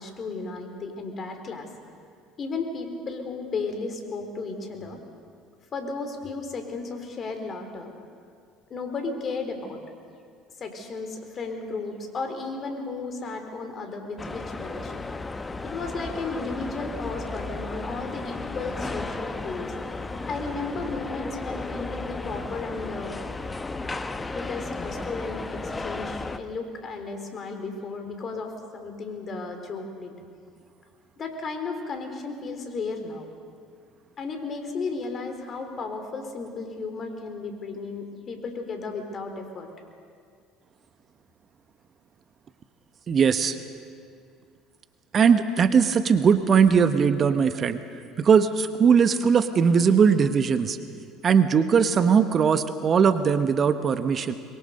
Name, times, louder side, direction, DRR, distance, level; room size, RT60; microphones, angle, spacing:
voice 1, 0.0-1.7 2.4-5.0 5.7-7.9 8.7-9.8 10.6-14.9 15.6-19.7 20.3-23.2 24.3-30.1 31.2-33.3 34.2-39.7, left 4 dB, 40° left, 6 dB, 4.0 m, -34 dB
sound 1, 14.2-26.4, left 3 dB, 20° left, 1.1 m, -34 dB
voice 2, 43.1-43.6 45.1-47.8 48.2-50.8 51.2-54.3, right 6 dB, 40° right, 10 dB, 1.1 m, -20 dB
23.0 x 22.5 x 6.7 m, 2.3 s
hypercardioid pair, 65°, 0 cm